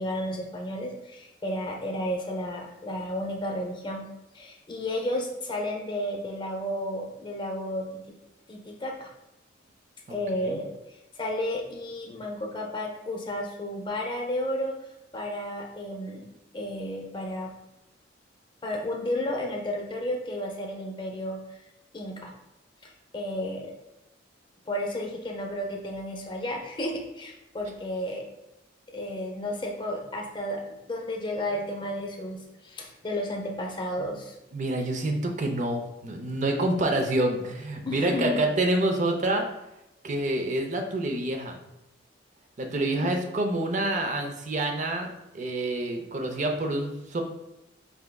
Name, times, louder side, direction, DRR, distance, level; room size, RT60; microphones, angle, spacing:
voice 1, 0.0-4.1 4.3-8.0 8.5-9.1 10.1-14.8 15.1-16.3 16.5-17.5 18.6-21.6 21.9-22.3 22.8-23.7 24.7-28.3 28.9-34.4 37.8-38.4 43.0-43.1, left 1 dB, 25° left, 1 dB, 0.6 m, -32 dB
voice 2, 34.5-39.5 40.0-41.6 42.6-45.1 45.3-47.2, right 1 dB, 40° right, 3 dB, 0.5 m, -27 dB
4.6 x 3.4 x 2.2 m, 0.91 s
head